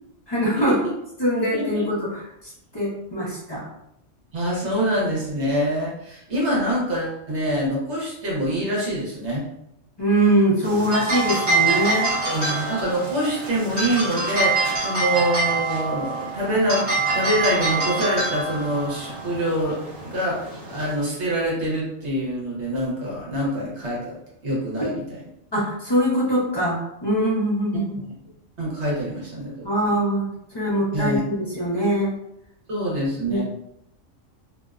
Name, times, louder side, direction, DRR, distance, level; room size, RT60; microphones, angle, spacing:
voice 1, 0.3-0.7 1.2-3.6 10.0-12.1 25.5-28.0 29.6-32.1 33.3-33.4, right 1 dB, 30° left, -7 dB, 0.5 m, -23 dB
voice 2, 1.5-1.8 4.3-9.4 12.2-16.9 17.1-24.1 24.4-25.0 28.6-29.7 30.9-31.2 32.7-33.4, equal, 65° right, -5 dB, 1.0 m, -25 dB
sound 1, 10.6-21.0, right 3 dB, 45° right, 1.4 m, -25 dB
2.6 x 2.0 x 2.3 m, 0.81 s
omnidirectional pair, 1.3 m